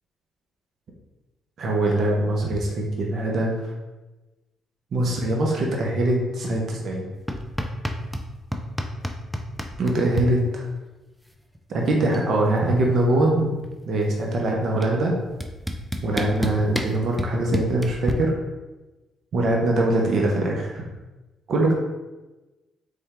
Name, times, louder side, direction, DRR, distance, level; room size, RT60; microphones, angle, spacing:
voice 1, 1.6-3.5 4.9-7.1 9.8-10.6 11.7-13.5 13.9-15.2 16.0-18.4 19.3-20.8 21.5-21.7, right 1 dB, 60° right, -1 dB, 0.8 m, -22 dB
sound 1, 7.3-8.3 8.5-10.3 11.6-11.7 11.9-12.3 12.6-13.9 14.8-14.9 15.4-18.1, equal, ahead, 0.5 m, -28 dB
4.2 x 3.6 x 3.5 m, 1.1 s
cardioid pair, 90°, 0 cm